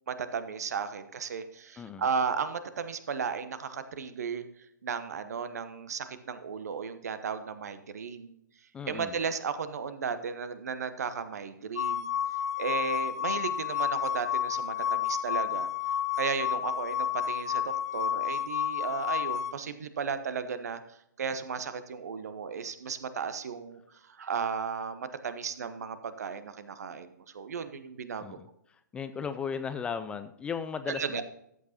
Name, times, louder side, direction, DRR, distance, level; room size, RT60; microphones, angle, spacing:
voice 1, 0.1-4.4 4.8-8.3 8.9-12.1 12.6-15.7 16.1-20.8 21.2-23.8 24.2-28.4 30.9-31.2, right 6 dB, 55° right, 12 dB, 1.0 m, -34 dB
voice 2, 1.8-2.1 8.7-9.2 28.2-31.2, left 6 dB, 10° left, 10 dB, 0.4 m, -36 dB
sound 1, 11.8-19.5, left 9 dB, 60° left, 0.8 m, -30 dB
14.0 x 8.2 x 2.9 m, 0.76 s
figure-of-eight pair, 120°, 10 cm